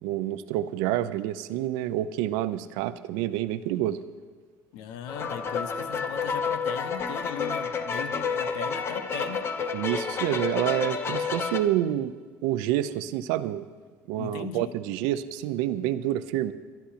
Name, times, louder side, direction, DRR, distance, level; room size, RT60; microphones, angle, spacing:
voice 1, 0.0-4.0 9.7-12.1 12.4-13.7 14.1-16.5, right 13 dB, 80° right, 13 dB, 0.6 m, -28 dB
voice 2, 4.7-9.5 14.2-14.7, left 8 dB, 80° left, 11 dB, 0.9 m, -38 dB
sound 1, 5.1-11.6, left 5 dB, 40° left, 1.1 m, -30 dB
24.5 x 11.5 x 2.9 m, 1.5 s
supercardioid pair, 105°, 7 cm